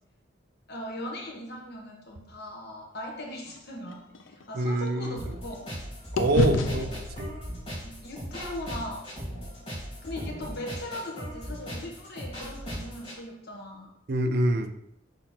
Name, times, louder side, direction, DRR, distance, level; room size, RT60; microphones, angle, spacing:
voice 1, 0.7-5.6 6.6-7.0 7.8-9.7 10.0-13.9, left 1 dB, 55° left, 0 dB, 1.3 m, -39 dB
sound 1, 3.5-5.8 6.2-10.4, left 3 dB, 85° left, 0.6 m, -33 dB
voice 2, 4.5-5.3 6.1-7.3 14.1-14.7, right 1 dB, 55° right, 7 dB, 0.6 m, -26 dB
sound 2, 5.2-13.2, equal, 30° left, 2.6 m, -38 dB
6.3 x 4.4 x 4.3 m, 0.78 s
head